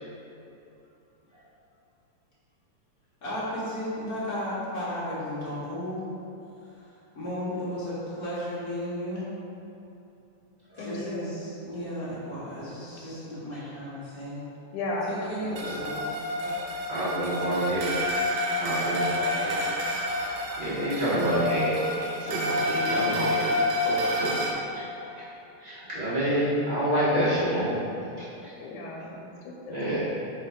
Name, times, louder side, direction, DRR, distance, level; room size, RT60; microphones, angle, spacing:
voice 1, 3.2-6.1 7.1-9.3 10.8-14.4 15.1-16.2, equal, 45° left, -10 dB, 1.3 m, -34 dB
voice 2, 10.8-11.3 14.7-15.1 17.2-17.6 28.6-29.7, left 2 dB, 90° left, -2 dB, 2.1 m, -35 dB
sound 1, 15.6-24.5, left 1 dB, 85° right, 2.1 m, -29 dB
voice 3, 16.9-17.9 18.5-19.6 20.3-23.6 23.8-24.5 24.7-24.9 25.2-25.3 25.6-27.8 28.2-28.3 29.7-30.0, right 1 dB, 40° right, -12 dB, 0.6 m, -28 dB
5.5 x 3.8 x 5.1 m, 2.8 s
omnidirectional pair, 3.4 m